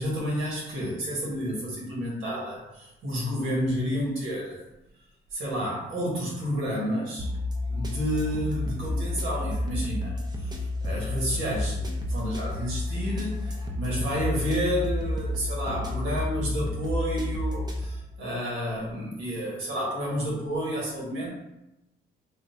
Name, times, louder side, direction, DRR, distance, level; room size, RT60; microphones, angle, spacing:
voice 1, 0.0-4.6 5.3-7.3 7.7-21.3, equal, 85° right, -5 dB, 1.4 m, -30 dB
sound 1, 7.2-17.9, left 2 dB, 20° right, 0.6 m, -30 dB
3.5 x 2.5 x 2.6 m, 0.90 s
cardioid pair, 90°, 20 cm